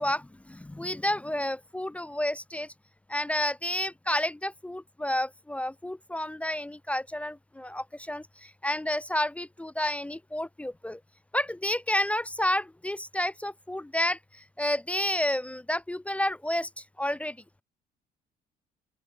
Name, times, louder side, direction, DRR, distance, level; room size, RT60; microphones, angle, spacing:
voice 1, 0.0-2.7 3.1-11.0 11.3-17.4, left 1 dB, 10° left, 0.5 m, -30 dB
open air
cardioid pair, 110°, 17 cm